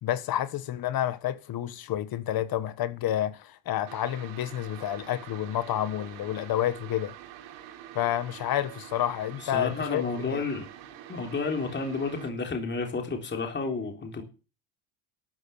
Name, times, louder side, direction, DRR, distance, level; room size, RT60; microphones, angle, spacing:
voice 1, 0.0-7.1 7.9-10.4, left 12 dB, 45° left, 1.4 m, -29 dB
sound 1, 3.9-12.3, right 11 dB, 90° right, 4.0 m, -46 dB
voice 2, 9.4-10.7 11.1-14.2, left 4 dB, 20° left, 3.6 m, -31 dB
13.0 x 11.0 x 6.9 m
cardioid pair, 135°, 50 cm